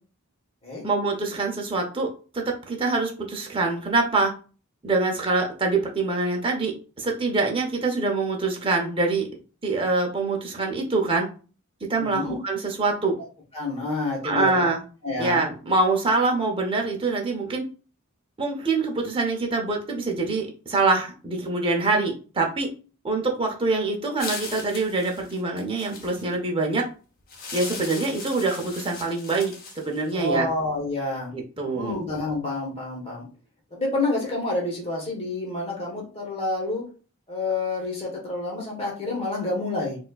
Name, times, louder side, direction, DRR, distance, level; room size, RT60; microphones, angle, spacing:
voice 1, 0.8-2.1 2.3-4.3 4.8-9.3 9.6-11.3 11.8-13.2 14.2-14.8 15.2-17.6 18.4-22.7 23.0-26.9 27.5-30.5 31.3-32.0, right 3 dB, 25° right, 1 dB, 0.7 m, -25 dB
voice 2, 11.9-12.4 13.5-14.7 15.0-15.4 30.1-31.3 31.7-33.2 33.7-36.8 37.3-40.0, left 2 dB, 30° left, -2 dB, 1.3 m, -28 dB
sound 1, 24.2-26.3 27.3-30.3, left 4 dB, 45° left, 0.8 m, -38 dB
4.1 x 2.5 x 2.4 m, 0.37 s
head